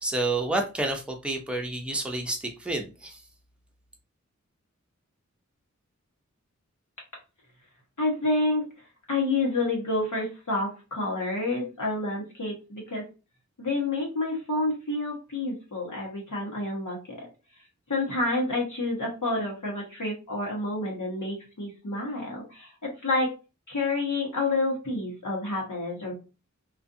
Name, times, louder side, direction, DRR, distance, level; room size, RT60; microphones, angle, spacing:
voice 1, 0.0-3.2, right 2 dB, 5° right, 0.6 m, -29 dB
voice 2, 8.0-8.6 9.1-13.0 13.6-17.2 17.9-23.4 23.7-26.1, left 2 dB, 85° left, 1.1 m, -29 dB
2.4 x 2.4 x 2.6 m
wide cardioid pair, 50°, 30 cm